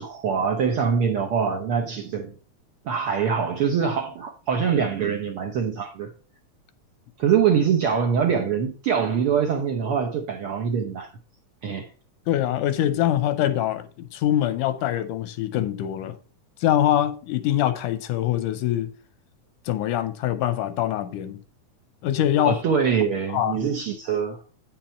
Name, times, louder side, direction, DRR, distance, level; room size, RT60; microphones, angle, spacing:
voice 1, 0.0-2.3 2.8-6.1 7.2-11.1 11.6-11.9 22.4-24.4, right 7 dB, 70° right, 1.3 m, -24 dB
voice 2, 12.3-16.2 16.6-18.9 19.7-21.4 22.0-22.6 23.3-23.6, left 12 dB, 90° left, 2.3 m, -24 dB
9.3 x 5.8 x 4.4 m
omnidirectional pair, 3.5 m